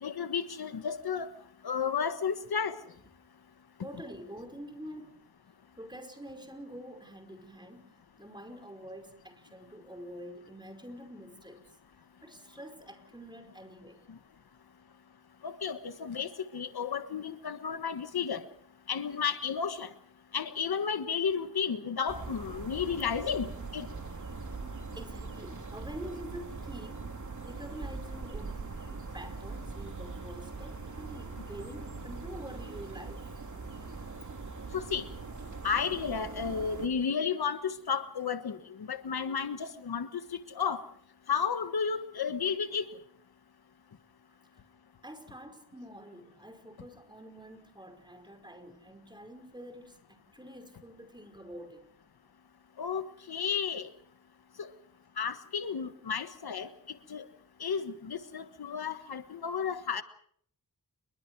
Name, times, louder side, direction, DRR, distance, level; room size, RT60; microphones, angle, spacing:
voice 1, 0.0-1.3 1.6-2.8 15.4-18.4 18.9-19.9 20.3-23.5 23.7-23.9 34.7-35.0 35.6-40.2 40.5-40.8 41.3-42.9 52.8-53.0 53.3-53.9 54.6-54.7 55.2-56.7 57.1-57.3 57.6-60.0, left 6 dB, 85° left, 1.5 m, -32 dB
voice 2, 3.8-5.1 5.8-11.6 12.2-14.1 24.9-27.1 27.4-33.2 45.0-51.9, equal, 10° right, 5.2 m, -47 dB
sound 1, 22.1-36.9, right 3 dB, 55° right, 3.4 m, -41 dB
29.0 x 22.5 x 4.8 m
wide cardioid pair, 80°, 37 cm